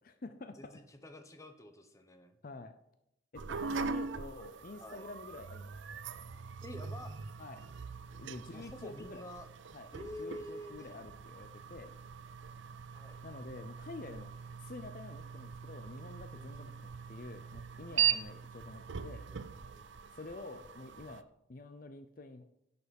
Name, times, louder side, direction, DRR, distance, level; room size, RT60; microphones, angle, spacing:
voice 1, 0.0-0.6 2.4-2.7 3.3-5.7 7.4-7.7 8.1-9.2 9.7-9.9 10.2-11.9 13.2-19.3 20.1-22.5, left 3 dB, 45° left, 9 dB, 0.6 m, -48 dB
voice 2, 0.6-2.4 3.8-4.0 4.8-5.0 6.6-7.1 8.5-9.5 9.9-10.9 12.9-13.2 16.3-16.7 19.1-19.9, left 1 dB, 15° left, 7 dB, 1.0 m, -48 dB
sound 1, 3.3-21.2, right 8 dB, 75° right, 0.6 m, -41 dB
11.0 x 6.8 x 5.3 m, 0.81 s
head